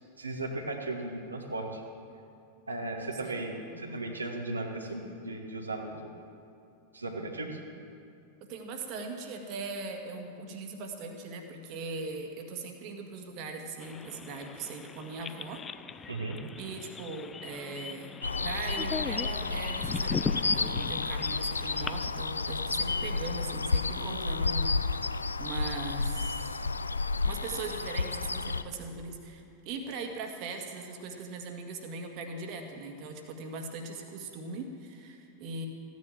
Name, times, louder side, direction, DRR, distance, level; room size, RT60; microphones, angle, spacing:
voice 1, 0.2-1.8 2.7-6.1 6.9-7.6 16.1-16.4, right 2 dB, 80° right, 1 dB, 1.5 m, -36 dB
voice 2, 3.2-4.1 8.4-15.6 15.9-16.1 16.6-26.7 27.2-35.7, right 3 dB, 40° right, 4 dB, 1.8 m, -40 dB
sound 1, 13.8-22.1, left 6 dB, 20° left, 0.4 m, -39 dB
sound 2, 18.2-28.6, left 3 dB, 80° left, 0.5 m, -31 dB
15.0 x 10.5 x 7.5 m, 2.6 s
figure-of-eight pair, 90°, 0 cm